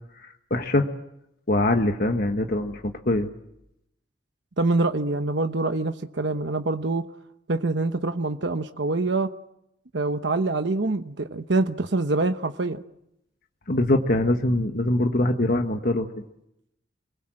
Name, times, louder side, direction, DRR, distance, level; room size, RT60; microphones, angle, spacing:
voice 1, 0.2-0.9 1.5-3.3 13.7-16.1, left 1 dB, 50° left, 4 dB, 1.4 m, -23 dB
voice 2, 4.6-7.1 7.5-9.3 9.9-12.8, right 2 dB, 65° right, 7 dB, 1.0 m, -25 dB
28.5 x 21.0 x 7.7 m, 0.80 s
head